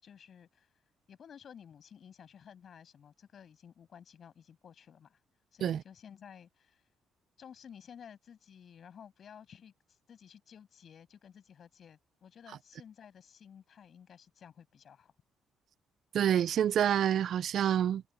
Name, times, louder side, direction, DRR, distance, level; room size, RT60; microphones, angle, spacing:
voice 1, 0.0-0.7 1.1-5.2 5.5-6.8 7.4-15.1, left 8 dB, 55° left, 6.9 m, -54 dB
voice 2, 16.1-18.0, right 10 dB, 65° right, 0.3 m, -27 dB
cardioid pair, 90°, 0 cm